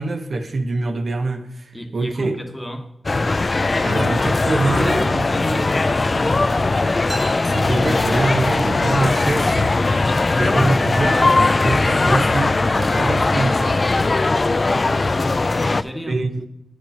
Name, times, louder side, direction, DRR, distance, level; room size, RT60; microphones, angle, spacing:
voice 1, 0.0-2.4 3.8-5.2 7.5-9.8 10.3-13.8 16.1-16.4, right 3 dB, 60° right, 0.9 m, -24 dB
voice 2, 1.7-2.9 4.7-7.1 15.5-16.2, equal, 10° left, 1.2 m, -32 dB
sound 1, 3.1-15.8, left 3 dB, 40° left, 0.3 m, -19 dB
sound 2, 7.1-8.8, right 1 dB, 30° right, 1.6 m, -37 dB
9.0 x 5.0 x 5.5 m
wide cardioid pair, 85°, 0 cm